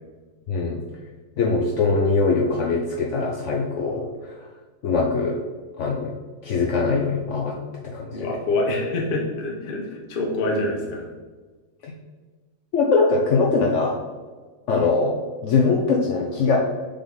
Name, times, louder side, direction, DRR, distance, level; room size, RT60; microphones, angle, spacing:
voice 1, 0.5-0.8 1.4-4.3 4.8-5.4 5.8-6.1 6.4-7.6 7.8-8.3 11.8-11.9 12.7-14.0 14.7-16.6, left 4 dB, 75° left, -1 dB, 0.6 m, -22 dB
voice 2, 8.1-11.1, left 2 dB, 40° left, 0 dB, 0.9 m, -26 dB
6.7 x 3.6 x 4.0 m, 1.4 s
omnidirectional pair, 2.0 m